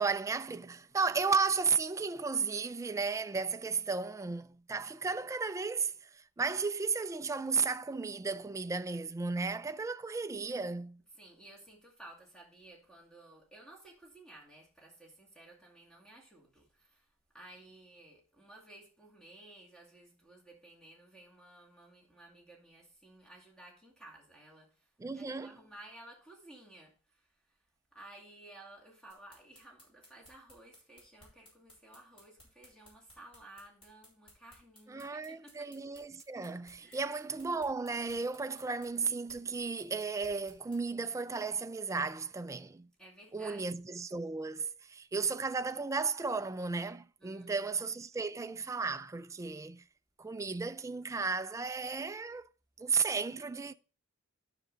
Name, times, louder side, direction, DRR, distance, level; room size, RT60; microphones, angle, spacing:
voice 1, 0.0-11.0 25.0-25.6 34.9-42.9 43.3-49.8 50.2-52.4 52.8-53.7, right 4 dB, 15° right, 0.3 m, -34 dB
voice 2, 11.1-27.3 27.9-35.7 36.8-37.1 43.0-43.7 47.2-47.7, right 1 dB, 5° left, 2.3 m, -55 dB
sound 1, 29.1-40.8, left 1 dB, 25° left, 3.7 m, -59 dB
9.6 x 6.0 x 3.9 m
head